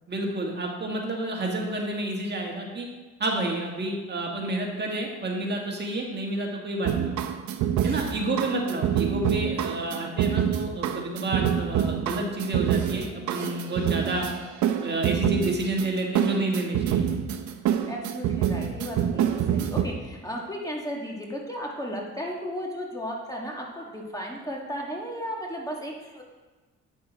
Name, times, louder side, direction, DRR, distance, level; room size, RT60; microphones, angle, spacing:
voice 1, 0.1-2.9 3.2-7.1 7.8-14.3 14.8-17.1, right 2 dB, 35° right, 0 dB, 1.7 m, -29 dB
sound 1, 6.9-19.8, right 9 dB, 75° right, 0.7 m, -26 dB
voice 2, 17.9-26.2, equal, 10° left, -1 dB, 1.4 m, -35 dB
8.6 x 6.3 x 4.0 m, 1.3 s
cardioid pair, 90°, 30 cm